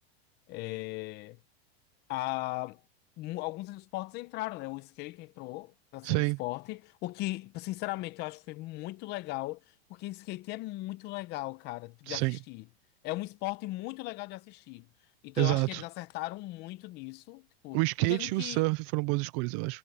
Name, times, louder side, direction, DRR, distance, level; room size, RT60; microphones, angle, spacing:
voice 1, 0.5-1.4 2.1-2.8 3.2-12.6 13.0-14.9 15.2-18.6, left 20 dB, 35° left, 0.8 m, -38 dB
voice 2, 6.0-6.4 12.1-12.4 15.4-15.8 17.7-19.8, right 25 dB, 30° right, 0.4 m, -28 dB
supercardioid pair, 155°, 32 cm